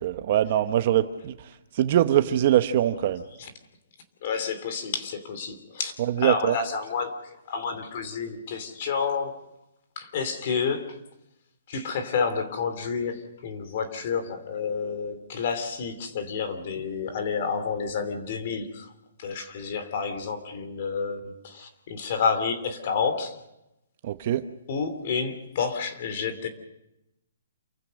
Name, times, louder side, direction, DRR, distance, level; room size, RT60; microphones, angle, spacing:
voice 1, 0.0-1.3 1.7-3.2 6.2-6.6 24.0-24.4, right 11 dB, 35° right, 10 dB, 1.0 m, -22 dB
voice 2, 4.2-9.4 10.0-11.0 11.7-18.9 19.2-23.4 24.7-26.5, left 5 dB, 35° left, 8 dB, 3.0 m, -30 dB
28.5 x 15.0 x 6.5 m, 0.87 s
hypercardioid pair, 175°, 0 cm